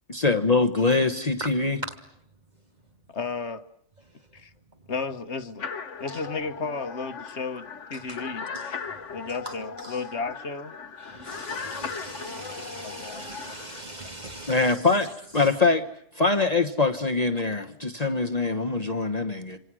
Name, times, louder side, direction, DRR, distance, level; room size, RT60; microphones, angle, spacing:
voice 1, 0.1-1.8 14.5-15.8 16.1-19.6, left 3 dB, 35° left, 1.3 m, -23 dB
voice 2, 3.1-3.6 4.3-4.5 4.9-5.7 6.0-8.4 9.1-10.7 12.8-13.2, left 4 dB, 65° left, 1.5 m, -33 dB
sound 1, 5.6-13.8, left 5 dB, 80° left, 1.6 m, -38 dB
voice 3, 8.5-10.0 11.0-15.1 15.4-15.5, right 1 dB, 35° right, 3.0 m, -41 dB
27.0 x 26.5 x 6.2 m
omnidirectional pair, 1.2 m